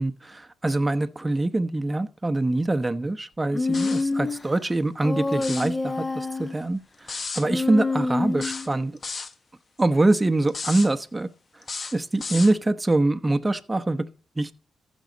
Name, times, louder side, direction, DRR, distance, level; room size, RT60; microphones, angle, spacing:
voice 1, 0.0-6.8 7.3-8.9 9.8-11.3 11.9-14.0 14.4-14.5, right 2 dB, 20° right, 1.0 m, -24 dB
Human voice, 3.5-4.5 5.0-6.6 7.4-8.7, left 3 dB, 25° left, 1.4 m, -27 dB
sound 1, 3.7-4.1 5.3-5.7 7.1-7.5 8.4-9.3 10.5-10.9 11.6-12.5, left 4 dB, 45° left, 1.4 m, -34 dB
14.5 x 6.3 x 4.0 m
cardioid pair, 70°, 0 cm